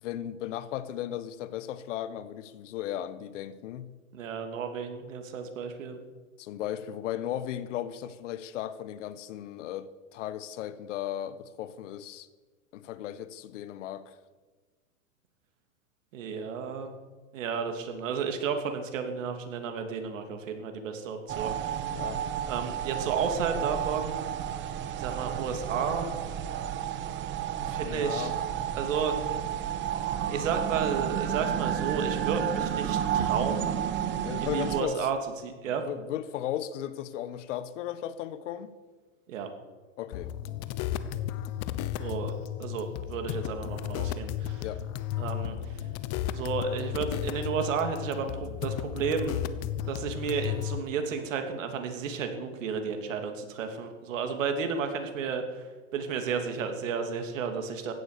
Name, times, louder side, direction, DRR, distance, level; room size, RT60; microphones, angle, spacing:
voice 1, 0.0-3.9 6.4-12.3 12.7-14.2 21.9-22.2 27.8-28.4 34.2-35.1 35.7-38.7 40.0-40.3 44.6-44.8, left 11 dB, 60° left, 1.3 m, -36 dB
voice 2, 4.1-6.0 16.1-16.9 17.3-21.9 22.5-24.2 25.0-26.2 27.6-28.3 28.7-29.4 30.3-33.7 34.4-35.8 39.3-39.5 42.0-42.3 42.6-44.7 45.2-45.9 46.3-49.5 49.8-55.7 55.9-57.9, right 6 dB, 65° right, 3.0 m, -32 dB
sound 1, 21.3-34.8, right 10 dB, 25° right, 1.1 m, -31 dB
sound 2, 40.1-50.8, left 11 dB, 35° left, 1.1 m, -34 dB
16.5 x 11.5 x 6.8 m
hypercardioid pair, 120°, 41 cm